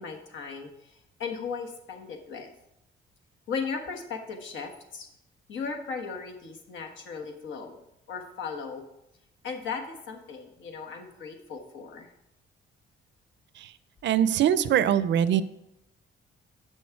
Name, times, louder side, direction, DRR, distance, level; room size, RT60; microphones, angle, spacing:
voice 1, 0.0-2.5 3.5-5.1 5.5-7.8 8.1-8.8 9.4-12.1, left 5 dB, 70° left, 3 dB, 1.3 m, -37 dB
voice 2, 14.0-15.4, right 10 dB, 65° right, 15 dB, 0.5 m, -23 dB
7.9 x 6.3 x 4.6 m, 0.83 s
cardioid pair, 90°, 20 cm